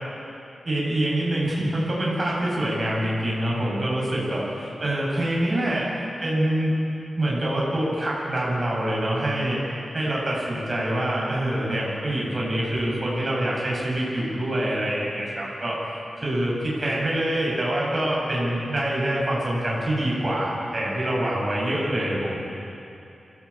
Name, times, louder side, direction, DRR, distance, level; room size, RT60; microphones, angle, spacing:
voice 1, 0.6-5.9 6.2-6.7 7.2-9.6 9.9-15.8 16.2-22.4, right 1 dB, 30° right, -4 dB, 7.9 m, -25 dB
25.5 x 17.5 x 8.8 m, 2.8 s
wide cardioid pair, 145°, 0 cm